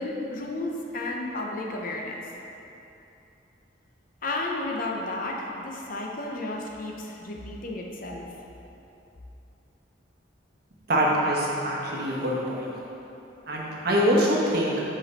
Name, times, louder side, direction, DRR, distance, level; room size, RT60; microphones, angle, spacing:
voice 1, 0.0-2.2 4.2-8.3, left 2 dB, 45° left, 0 dB, 0.6 m, -32 dB
voice 2, 10.9-12.7 13.5-14.7, equal, 50° right, -3 dB, 1.0 m, -24 dB
5.4 x 5.1 x 4.0 m, 2.9 s
head